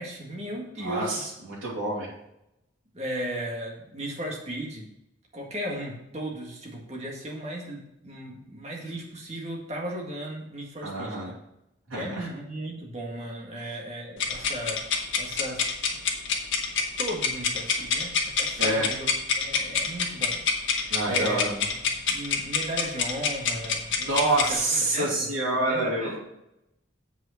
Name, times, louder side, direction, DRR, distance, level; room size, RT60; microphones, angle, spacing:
voice 1, 0.0-1.3 2.9-4.9 5.3-11.2 11.9-15.6 17.0-19.1 19.4-20.4 20.7-21.5 21.8-25.3 25.6-26.2, right 1 dB, 30° right, -1 dB, 1.9 m, -36 dB
voice 2, 0.8-2.1 10.8-11.3 11.9-12.3 18.6-18.9 20.9-21.6 24.1-26.2, right 2 dB, 80° right, -6 dB, 3.0 m, -27 dB
sound 1, 14.2-24.5, left 5 dB, 70° left, 1.4 m, -27 dB
7.8 x 5.2 x 6.5 m, 0.84 s
head